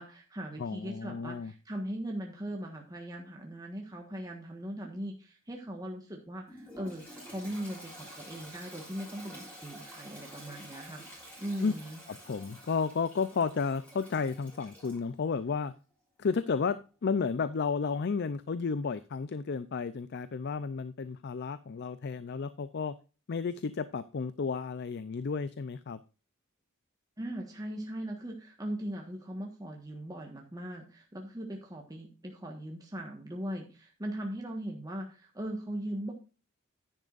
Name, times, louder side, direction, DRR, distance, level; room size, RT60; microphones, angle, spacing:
voice 1, 0.0-11.0 11.4-12.0 27.2-36.1, right 1 dB, 15° right, 1.4 m, -39 dB
voice 2, 0.6-1.5 11.6-11.7 12.1-15.7 16.2-22.9 23.3-26.0, left 5 dB, 50° left, 0.4 m, -32 dB
Toilet flush, 6.5-15.0, equal, 5° left, 5.5 m, -49 dB
10.5 x 10.0 x 2.5 m
head